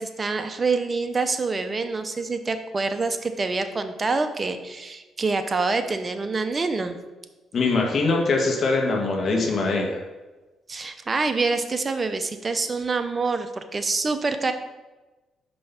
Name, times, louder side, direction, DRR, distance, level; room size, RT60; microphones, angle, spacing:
voice 1, 0.0-7.0 10.7-14.5, right 3 dB, 30° right, 8 dB, 0.7 m, -26 dB
voice 2, 7.5-10.0, left 3 dB, 50° left, 0 dB, 1.7 m, -22 dB
5.5 x 5.3 x 5.8 m, 1.2 s
cardioid pair, 90°, 0 cm